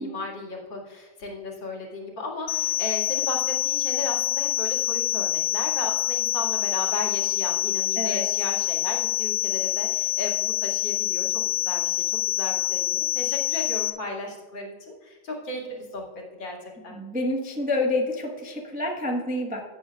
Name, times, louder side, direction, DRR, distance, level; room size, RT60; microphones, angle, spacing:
voice 1, 0.0-11.3 11.7-16.0 16.4-16.6 16.8-17.0, left 2 dB, 60° left, -2 dB, 2.6 m, -35 dB
sound 1, 2.5-13.9, left 15 dB, 80° left, 1.4 m, -26 dB
voice 2, 8.0-8.3 16.8-19.6, left 1 dB, 10° right, 0 dB, 0.4 m, -28 dB
16.0 x 7.9 x 2.3 m, 1.5 s
omnidirectional pair, 2.3 m